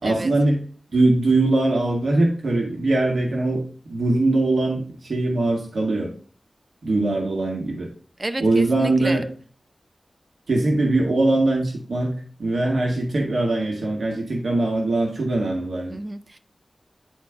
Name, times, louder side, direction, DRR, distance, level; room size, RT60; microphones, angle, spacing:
voice 1, 0.0-0.6 0.9-3.6 3.9-6.1 6.8-7.9 8.4-9.3 10.5-12.1 12.4-16.0, right 2 dB, 90° right, -1 dB, 1.7 m, -21 dB
voice 2, 8.2-9.2 15.9-16.4, right 2 dB, 35° right, 9 dB, 0.7 m, -30 dB
9.4 x 4.4 x 3.5 m, 0.42 s
wide cardioid pair, 75°, 0 cm